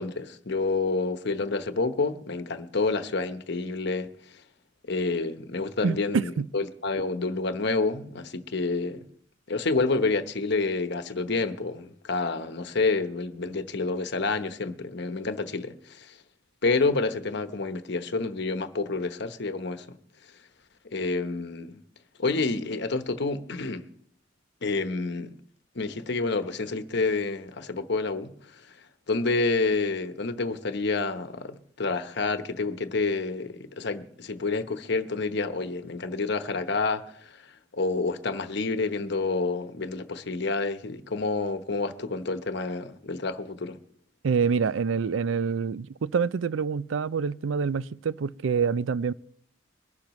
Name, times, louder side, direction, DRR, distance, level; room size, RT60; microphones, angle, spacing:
voice 1, 0.0-4.1 4.9-9.1 9.5-16.2 16.6-20.0 20.9-21.8 22.2-23.9 24.6-25.3 25.7-28.6 29.1-37.4 37.7-43.8, left 3 dB, 65° left, 1.0 m, -28 dB
voice 2, 5.8-6.5 44.2-49.1, right 5 dB, 85° right, 0.4 m, -26 dB
22.5 x 12.0 x 3.1 m
head